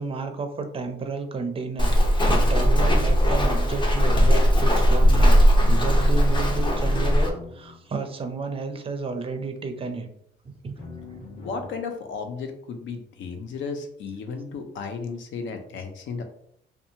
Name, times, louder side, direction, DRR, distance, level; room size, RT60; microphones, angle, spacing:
voice 1, 0.0-2.0 2.3-10.1 10.5-10.7, right 4 dB, 30° right, 6 dB, 0.4 m, -31 dB
Walk footsteps, 1.8-7.3, equal, 25° left, 0.6 m, -18 dB
sound 1, 5.9-8.2 10.8-11.7, left 3 dB, 55° left, 1.1 m, -42 dB
voice 2, 11.4-16.2, left 5 dB, 70° left, 5 dB, 0.5 m, -34 dB
2.7 x 2.2 x 2.7 m, 0.69 s
cardioid pair, 90°, 20 cm